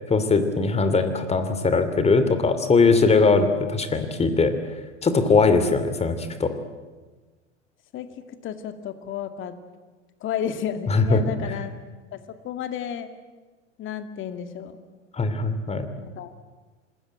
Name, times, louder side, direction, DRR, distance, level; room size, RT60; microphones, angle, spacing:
voice 1, 0.1-4.5 5.0-6.5 10.9-11.2 15.1-15.9, left 4 dB, 15° left, 10 dB, 2.7 m, -20 dB
voice 2, 7.9-9.6 10.2-11.7 12.1-13.1 13.8-14.8 16.2-16.3, left 9 dB, 35° left, 9 dB, 2.2 m, -32 dB
26.0 x 20.5 x 9.0 m, 1.3 s
figure-of-eight pair, 90°, 36 cm